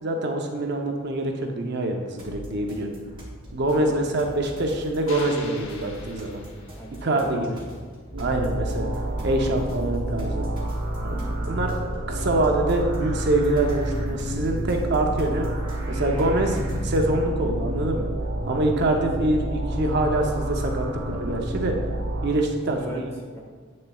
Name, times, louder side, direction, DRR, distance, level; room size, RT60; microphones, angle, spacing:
voice 1, 0.0-2.9 3.5-6.4 7.0-7.6 8.2-10.5 11.0-11.1 11.5-11.7 12.1-15.5 15.9-16.6 16.8-18.1 18.5-21.8 22.2-23.0, right 2 dB, 50° right, 2 dB, 0.6 m, -25 dB
sound 1, 2.2-17.2, equal, 25° right, 1.5 m, -43 dB
sound 2, 5.1-7.2, left 3 dB, 70° left, 0.8 m, -42 dB
voice 2, 6.7-7.6 10.9-11.4 18.8-19.0 22.6-23.4, equal, 10° left, -3 dB, 1.2 m, -40 dB
sound 3, 8.1-22.3, right 1 dB, 75° right, 1.6 m, -29 dB
8.1 x 6.3 x 2.3 m, 1.5 s
head